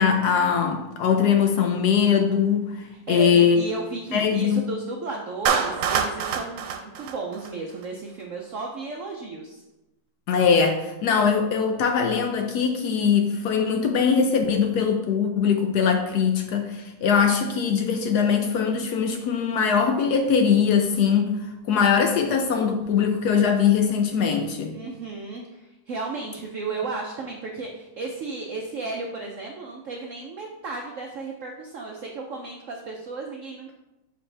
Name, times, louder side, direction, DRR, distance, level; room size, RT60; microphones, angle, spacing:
voice 1, 0.0-3.6 4.1-4.7 10.3-24.7, left 6 dB, 70° left, 4 dB, 1.0 m, -21 dB
voice 2, 2.9-9.6 24.7-33.7, right 3 dB, 70° right, 0 dB, 0.7 m, -34 dB
Clapping, 5.5-7.9, right 7 dB, 90° right, 1.4 m, -26 dB
6.6 x 5.3 x 3.3 m, 0.98 s
omnidirectional pair, 2.1 m